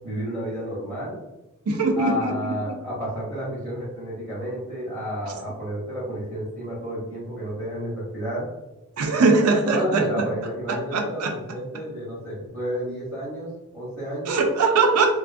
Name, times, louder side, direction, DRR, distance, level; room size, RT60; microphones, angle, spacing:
voice 1, 0.0-1.1 2.0-8.5 9.6-13.5 13.7-14.3, equal, 10° right, -10 dB, 0.8 m, -31 dB
voice 2, 1.7-2.3 2.7-2.8 9.0-10.0 10.7-11.3 14.3-15.1, right 3 dB, 90° right, 3 dB, 0.5 m, -21 dB
2.5 x 2.3 x 2.4 m, 0.98 s
head